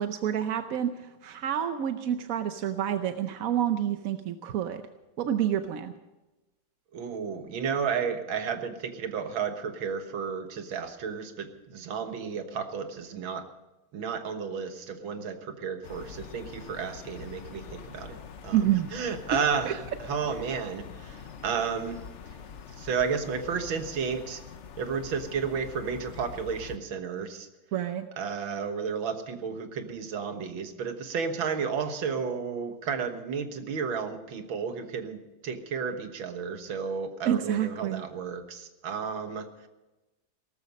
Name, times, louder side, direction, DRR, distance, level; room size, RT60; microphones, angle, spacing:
voice 1, 0.0-4.8 5.2-5.9 18.5-18.9 19.3-19.4 19.7-19.8 27.7-28.1 37.2-38.0, right 10 dB, 60° right, 8 dB, 0.9 m, -28 dB
voice 2, 6.9-13.5 13.9-18.6 18.9-22.0 22.8-24.4 24.8-27.5 28.2-39.7, right 6 dB, 85° right, 7 dB, 2.1 m, -32 dB
sound 1, 15.8-26.8, left 6 dB, 50° left, 0.9 m, -45 dB
18.0 x 13.5 x 5.3 m, 1.1 s
omnidirectional pair, 2.1 m